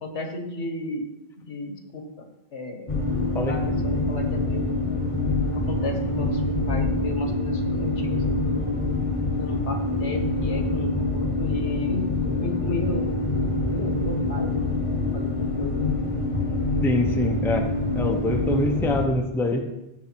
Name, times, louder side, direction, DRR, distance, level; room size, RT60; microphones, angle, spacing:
voice 1, 0.0-1.1 1.5-2.9 3.5-4.7 5.6-6.4 6.7-8.8 9.4-13.2 13.7-14.7 15.1-15.9, left 2 dB, 65° left, 4 dB, 1.5 m, -33 dB
sound 1, 2.9-19.1, left 2 dB, 25° left, 1.1 m, -25 dB
voice 2, 16.8-19.7, left 2 dB, ahead, 3 dB, 0.7 m, -25 dB
14.0 x 4.8 x 4.5 m, 0.93 s
omnidirectional pair, 1.2 m